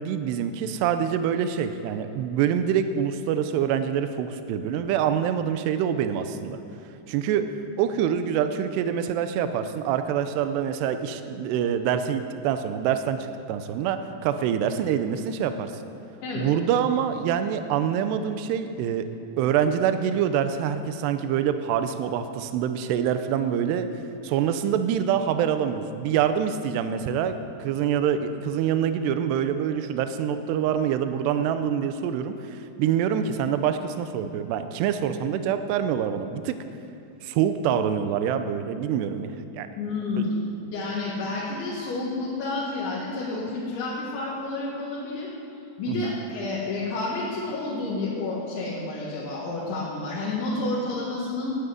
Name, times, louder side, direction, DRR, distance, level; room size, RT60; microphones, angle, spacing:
voice 1, 0.0-6.6 7.1-13.2 13.5-15.7 16.4-19.1 19.4-23.9 24.2-27.3 27.6-36.6 37.2-39.7 40.2-40.3 45.9-46.0, right 8 dB, 80° right, 9 dB, 2.7 m, -25 dB
voice 2, 39.8-40.4 40.7-45.3 45.8-51.6, left 2 dB, 80° left, -8 dB, 4.3 m, -30 dB
12.0 x 9.4 x 9.3 m, 2.9 s
omnidirectional pair, 5.2 m